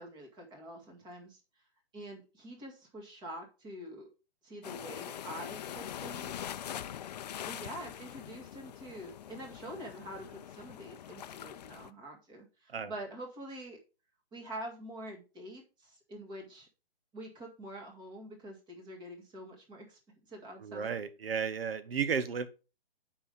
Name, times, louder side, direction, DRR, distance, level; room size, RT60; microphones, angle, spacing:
voice 1, 0.0-1.4 1.9-4.1 4.4-6.4 7.5-13.8 14.3-16.7 17.1-20.0 20.3-20.9, right 1 dB, 15° right, 1 dB, 1.9 m, -46 dB
sound 1, 4.6-11.9, left 10 dB, 45° left, 0.5 m, -43 dB
voice 2, 20.6-22.5, right 6 dB, 80° right, 11 dB, 0.9 m, -33 dB
6.9 x 5.5 x 5.0 m, 0.31 s
hypercardioid pair, 150°, 29 cm